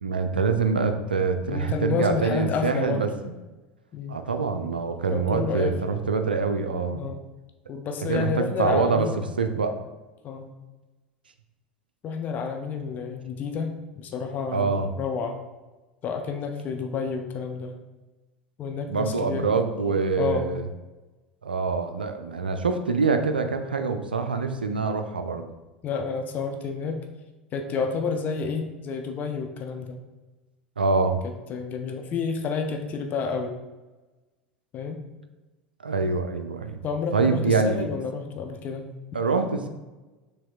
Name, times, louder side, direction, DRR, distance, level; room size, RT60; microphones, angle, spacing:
voice 1, 0.0-3.3 4.1-7.1 8.1-9.1 9.4-9.8 14.5-14.9 18.9-20.7 21.4-25.5 30.8-31.2 35.8-36.8 37.1-37.9 39.1-39.7, right 4 dB, 80° right, 7 dB, 0.4 m, -25 dB
voice 2, 1.5-3.1 3.9-4.2 5.1-5.8 6.9-7.3 7.7-9.2 10.2-10.5 12.0-15.4 16.0-17.8 18.6-19.5 20.2-20.5 25.8-27.0 27.5-30.0 31.2-33.5 34.7-35.0 36.8-38.9, left 5 dB, 35° left, 5 dB, 0.5 m, -30 dB
5.9 x 3.4 x 2.4 m, 1.1 s
figure-of-eight pair, 75°, 5 cm